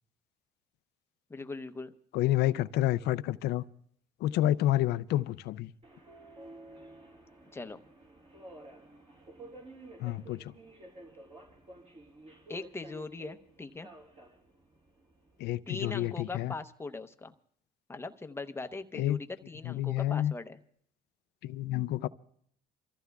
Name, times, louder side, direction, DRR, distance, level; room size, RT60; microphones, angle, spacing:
voice 1, 1.3-1.9 7.5-7.8 12.5-13.9 15.7-17.3 17.9-20.6, left 3 dB, 15° left, 0.8 m, -40 dB
voice 2, 2.1-3.6 4.2-5.7 10.0-10.4 15.4-16.5 18.9-19.2 19.7-20.3 21.4-22.1, left 13 dB, 75° left, 0.4 m, -29 dB
Subway metro underground, 5.8-15.5, right 2 dB, 40° right, 4.7 m, -52 dB
28.5 x 14.5 x 2.3 m
cardioid pair, 110°, 17 cm